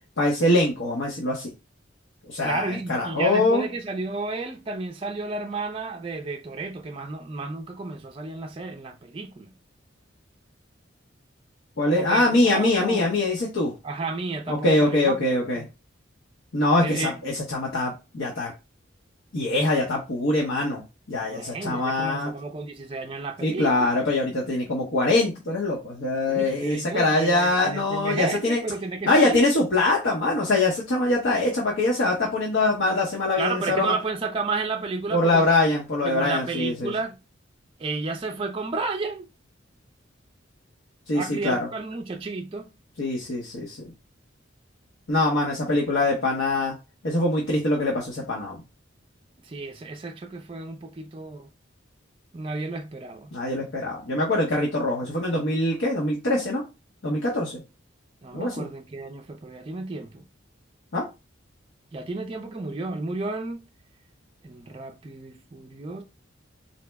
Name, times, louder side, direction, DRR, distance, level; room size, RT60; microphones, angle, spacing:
voice 1, 0.2-1.5 2.3-3.7 11.8-13.7 14.5-15.6 16.5-18.5 19.3-22.3 23.4-28.6 29.1-33.9 35.1-36.9 41.1-41.7 43.0-43.8 45.1-46.7 47.0-48.6 53.3-56.6 57.0-57.6 58.3-58.7 60.9-61.0, left 2 dB, 70° left, 0.8 m, -23 dB
voice 2, 2.4-9.5 11.9-13.1 13.8-15.6 16.8-17.1 21.3-23.9 26.3-29.6 33.4-35.5 36.0-37.2 37.8-39.3 41.1-42.7 49.4-51.5 52.3-53.3 58.2-60.2 61.9-63.6 64.4-66.0, right 3 dB, 30° right, 0.4 m, -32 dB
4.1 x 2.0 x 3.3 m
head